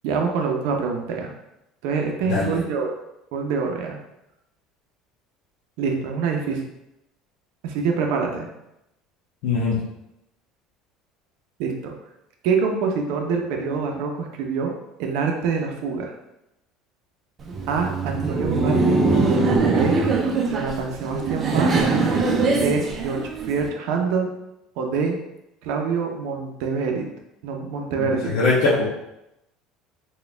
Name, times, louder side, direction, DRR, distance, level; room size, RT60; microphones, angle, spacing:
voice 1, 0.0-1.3 1.8-2.9 3.3-4.0 5.8-6.7 7.6-8.5 11.6-11.9 12.4-14.7 15.0-16.1 17.7-19.0 19.7-20.0 20.4-21.8 22.6-24.3 24.8-25.2 25.6-27.1 27.4-28.3, right 5 dB, 70° right, 2 dB, 0.6 m, -25 dB
voice 2, 9.4-9.8 28.0-28.9, left 3 dB, 70° left, -6 dB, 0.7 m, -21 dB
Laughter, 17.4-23.7, right 3 dB, 30° right, 0.4 m, -22 dB
4.1 x 2.3 x 3.3 m, 0.87 s
cardioid pair, 150°, 0 cm